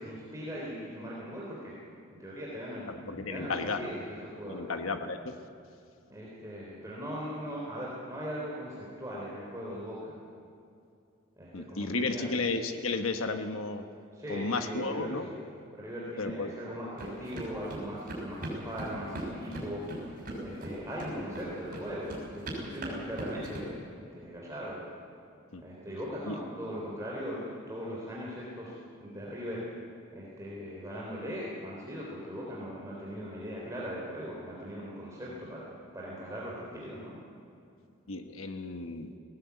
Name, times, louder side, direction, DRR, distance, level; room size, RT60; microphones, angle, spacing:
voice 1, 0.0-1.7 2.2-2.8 3.3-4.6 6.1-10.2 11.4-12.3 14.1-15.4 15.8-20.0 20.4-23.8 24.1-24.8 25.6-28.7 29.0-29.6 30.1-37.2, equal, 15° right, -5 dB, 3.4 m, -39 dB
voice 2, 2.9-4.0 4.5-5.4 11.5-13.8 14.3-15.2 16.2-16.5 25.5-25.6 26.2-26.4 38.1-39.1, left 3 dB, 75° left, 6 dB, 1.2 m, -33 dB
sound 1, 17.0-23.6, right 1 dB, 40° right, 6.3 m, -39 dB
19.0 x 18.0 x 8.2 m, 2.5 s
head